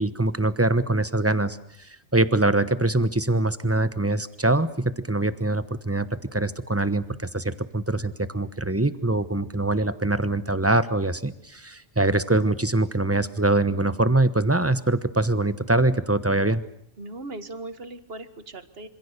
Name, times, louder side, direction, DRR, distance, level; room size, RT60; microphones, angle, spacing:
voice 1, 0.0-16.6, right 2 dB, 10° right, 13 dB, 1.0 m, -23 dB
voice 2, 17.0-18.9, right 2 dB, 45° right, 11 dB, 1.8 m, -38 dB
26.5 x 26.5 x 6.8 m, 0.69 s
omnidirectional pair, 1.4 m